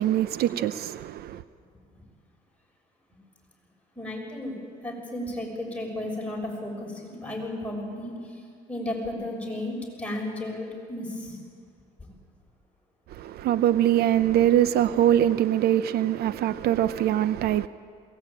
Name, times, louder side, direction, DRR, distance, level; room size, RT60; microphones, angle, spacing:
voice 1, 0.0-1.4 13.1-17.7, right 11 dB, 70° right, 0.6 m, -23 dB
voice 2, 4.0-8.1 8.7-11.4 12.0-12.1, left 1 dB, 10° left, 6.4 m, -34 dB
22.0 x 18.5 x 8.7 m
cardioid pair, 110°, 17 cm